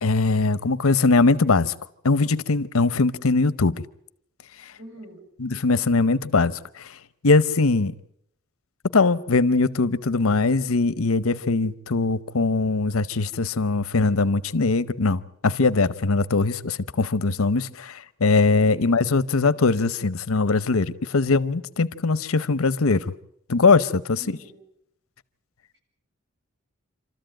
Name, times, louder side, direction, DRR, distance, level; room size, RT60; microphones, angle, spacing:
voice 1, 0.0-1.7 2.0-3.8 5.4-7.0 7.2-7.9 8.9-23.1 23.5-24.4, left 3 dB, 90° left, 0.8 m, -21 dB
voice 2, 4.8-5.2 18.8-19.0 24.2-24.6 25.7-25.8, equal, 60° right, 7.6 m, -44 dB
27.5 x 13.5 x 8.9 m
head